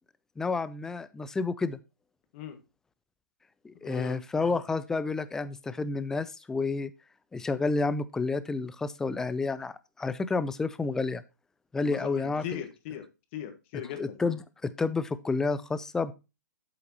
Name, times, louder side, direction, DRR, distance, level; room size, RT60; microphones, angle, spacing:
voice 1, 0.4-1.8 3.6-6.9 7.3-11.2 11.7-12.4 14.0-16.1, left 3 dB, 5° left, 16 dB, 0.3 m, -30 dB
voice 2, 3.8-4.2 11.8-13.1 13.3-14.2, left 10 dB, 40° left, 8 dB, 1.4 m, -39 dB
8.1 x 7.7 x 2.9 m, 0.27 s
hypercardioid pair, 135°, 10 cm